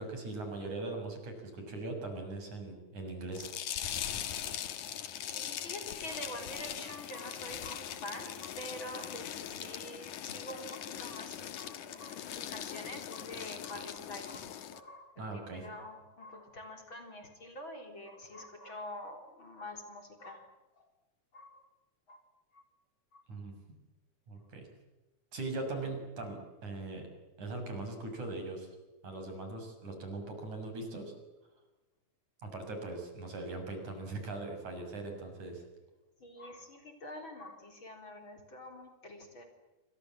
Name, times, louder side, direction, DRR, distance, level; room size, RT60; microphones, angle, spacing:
voice 1, 0.0-3.5 15.2-15.7 23.3-23.5 24.3-24.7 25.3-27.1 27.4-28.7 29.0-31.1 32.4-35.6, right 2 dB, 60° right, 5 dB, 7.9 m, -40 dB
sound 1, 3.3-14.8, left 10 dB, 70° left, 2.9 m, -41 dB
voice 2, 5.3-20.5 21.3-21.6 22.1-22.2 23.1-23.2 36.2-39.5, left 1 dB, 35° left, 5 dB, 4.6 m, -46 dB
29.0 x 26.0 x 7.6 m, 1.1 s
omnidirectional pair, 3.7 m